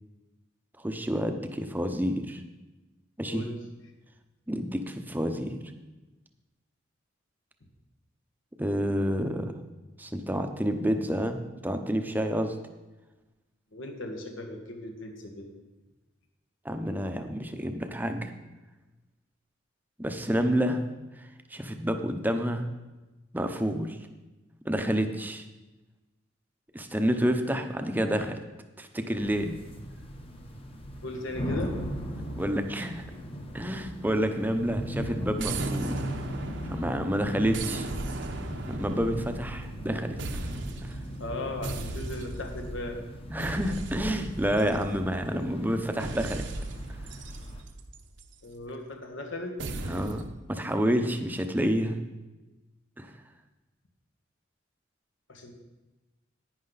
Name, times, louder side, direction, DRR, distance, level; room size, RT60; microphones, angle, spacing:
voice 1, 0.8-2.4 3.2-3.4 4.5-5.6 8.6-9.5 10.0-12.5 16.6-18.3 20.0-20.8 21.2-22.7 23.3-24.0 24.6-25.4 26.7-28.4 28.8-29.5 32.3-33.0 33.5-36.0 36.7-37.9 38.7-40.2 40.8-40.9 43.3-46.4 49.9-52.0 53.0-53.1, equal, 10° right, 6 dB, 0.7 m, -29 dB
voice 2, 3.3-3.6 13.7-15.5 31.0-31.8 41.2-43.0 48.4-49.6 55.3-55.5, left 1 dB, 75° left, 3 dB, 1.6 m, -37 dB
sound 1, 29.2-47.6, equal, 30° left, 1.0 m, -38 dB
sound 2, 35.4-37.0 37.5-39.9 40.2-41.0 41.6-42.7 43.4-45.3 46.0-48.4 49.6-50.3, right 2 dB, 65° right, 0.8 m, -37 dB
11.0 x 9.6 x 4.0 m, 1.1 s
head